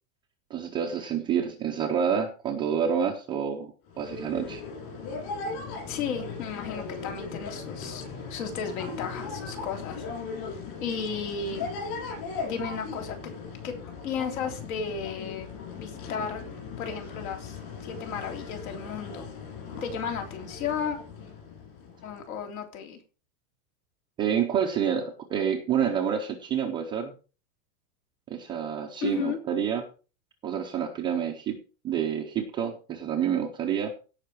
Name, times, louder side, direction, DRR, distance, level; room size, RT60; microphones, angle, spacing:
voice 1, 0.5-4.6 24.2-27.1 28.3-29.8 30.4-31.5 31.8-33.9, right 8 dB, 10° right, 1 dB, 0.5 m, -28 dB
sound 1, 3.9-22.4, left 4 dB, 40° left, 7.5 m, -38 dB
voice 2, 5.9-8.0 8.3-10.0 10.8-11.7 12.4-13.2 13.6-13.8 14.0-15.5 15.8-16.4 16.8-19.3 19.8-21.0 22.0-23.0 29.0-29.4, left 6 dB, 60° left, 5 dB, 3.5 m, -34 dB
17.0 x 5.7 x 4.6 m, 0.35 s
supercardioid pair, 170°, 46 cm